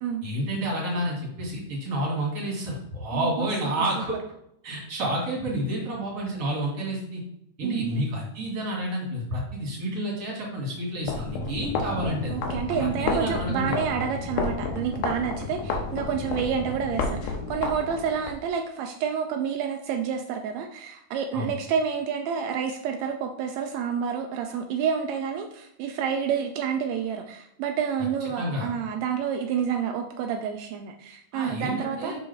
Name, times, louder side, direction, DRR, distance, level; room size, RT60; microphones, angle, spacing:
voice 1, 0.2-4.2 4.6-7.2 7.6-12.4 12.8-13.8 21.3-21.5 28.4-28.7 31.3-32.2, right 1 dB, 35° right, -2 dB, 2.1 m, -30 dB
voice 2, 3.1-3.5 7.6-8.1 12.3-32.1, right 7 dB, 85° right, 4 dB, 1.5 m, -29 dB
sound 1, 11.0-18.4, left 3 dB, 80° left, 2.3 m, -31 dB
6.3 x 5.3 x 3.4 m, 0.78 s
omnidirectional pair, 3.7 m